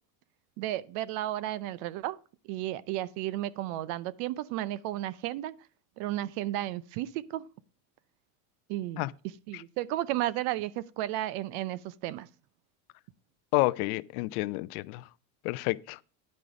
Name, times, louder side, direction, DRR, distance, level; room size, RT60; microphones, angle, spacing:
voice 1, 0.6-2.2 2.5-5.5 6.0-7.5 8.7-9.0 9.5-12.3, right 14 dB, 65° right, 0.7 m, -33 dB
voice 2, 13.5-15.0 15.4-16.0, left 21 dB, 75° left, 0.6 m, -29 dB
9.8 x 5.3 x 4.9 m
cardioid pair, 145°, 45 cm